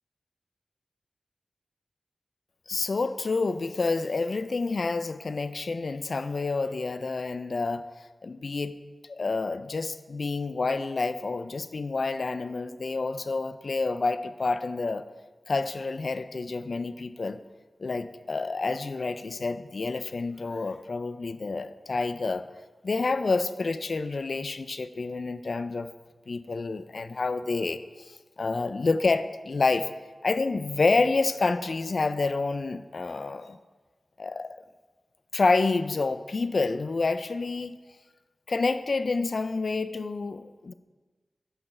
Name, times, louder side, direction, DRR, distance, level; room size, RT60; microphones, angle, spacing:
voice 1, 2.7-7.8 8.2-8.8 9.1-15.1 15.5-17.4 17.8-22.5 22.8-25.9 26.3-27.8 28.1-29.9 30.2-33.6 34.2-34.6 35.3-37.8 38.5-40.7, left 3 dB, 65° left, 12 dB, 0.4 m, -28 dB
10.0 x 6.8 x 3.2 m, 1.3 s
cardioid pair, 50°, 0 cm